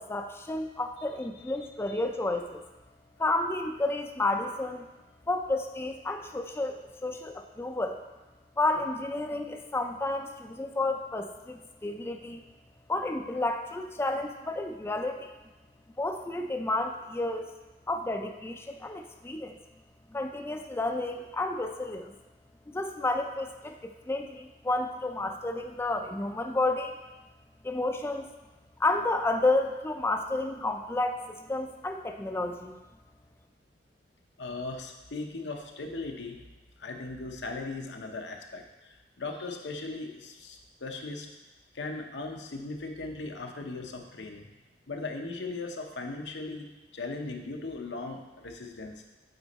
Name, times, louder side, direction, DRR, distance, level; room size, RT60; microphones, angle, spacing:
voice 1, 0.0-2.6 3.2-4.9 5.3-8.0 8.6-12.4 12.9-15.3 16.0-17.5 17.9-19.6 20.1-22.1 22.7-27.0 27.6-28.3 28.8-32.7, left 2 dB, 15° left, 4 dB, 0.3 m, -31 dB
voice 2, 34.4-36.4 36.8-41.3 41.7-44.5 44.9-49.0, left 3 dB, 85° left, 3 dB, 0.8 m, -38 dB
7.9 x 4.3 x 4.1 m, 1.1 s
head